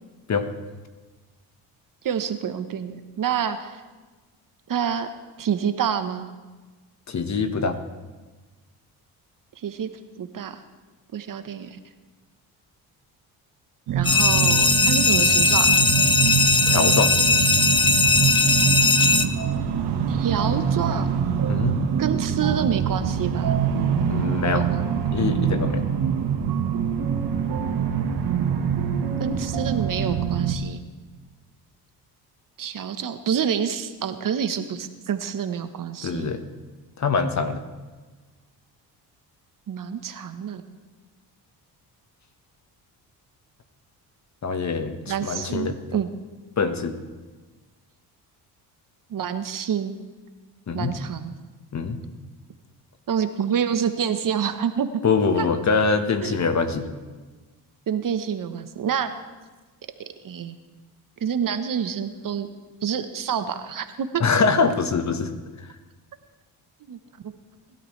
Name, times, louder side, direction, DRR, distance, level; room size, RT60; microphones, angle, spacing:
voice 1, 2.0-3.8 4.7-5.1 5.4-6.3 9.6-9.9 10.2-10.6 11.1-11.8 13.9-15.8 20.1-21.1 22.0-23.6 24.5-24.8 29.2-30.8 32.6-36.3 39.7-40.6 45.1-46.1 49.1-50.0 50.7-51.3 53.1-54.9 55.4-55.5 56.2-56.4 57.9-59.1 60.2-60.6 61.2-62.5 62.8-64.2 66.9-67.0, right 8 dB, 50° right, 9 dB, 1.2 m, -27 dB
voice 2, 7.1-7.8 16.7-17.2 21.5-21.8 24.1-24.7 25.1-25.8 36.0-36.4 37.0-37.6 44.4-45.8 46.6-47.0 50.7-51.0 51.7-52.0 55.0-56.9 64.2-65.3 65.6-65.7, left 4 dB, 45° left, 8 dB, 1.4 m, -24 dB
sound 1, 13.9-30.5, right 7 dB, 75° right, 1.5 m, -24 dB
sound 2, 14.0-19.2, left 3 dB, 10° left, 0.9 m, -19 dB
20.5 x 12.0 x 3.3 m, 1.3 s
cardioid pair, 75°, 40 cm